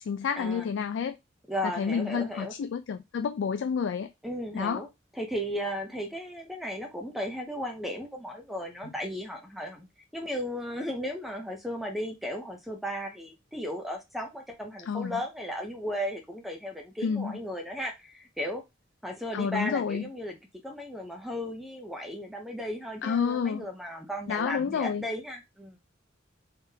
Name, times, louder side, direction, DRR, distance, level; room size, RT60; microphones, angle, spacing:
voice 1, 0.1-1.2 1.6-4.1 4.5-4.9 14.9-15.2 17.0-17.4 19.3-20.0 23.0-23.7 24.3-25.1, left 6 dB, 75° left, 0.3 m, -29 dB
voice 2, 1.5-2.5 4.2-4.9 5.1-9.9 10.1-18.6 19.0-20.4 20.6-25.8, equal, ahead, 0.5 m, -35 dB
3.5 x 3.5 x 2.7 m
head